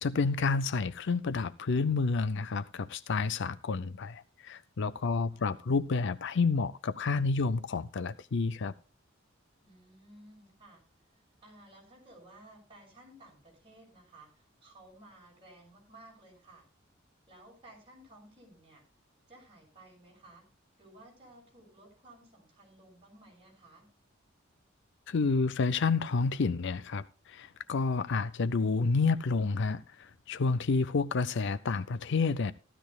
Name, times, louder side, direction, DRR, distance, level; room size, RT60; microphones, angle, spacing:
voice 1, 0.0-8.7 25.1-32.5, left 4 dB, 60° left, 0.5 m, -29 dB
voice 2, 5.1-5.7 9.6-10.8 11.4-16.7 17.3-18.8 19.3-20.4 20.8-23.9, right 1 dB, 30° right, 6.2 m, -56 dB
15.5 x 12.5 x 2.3 m
head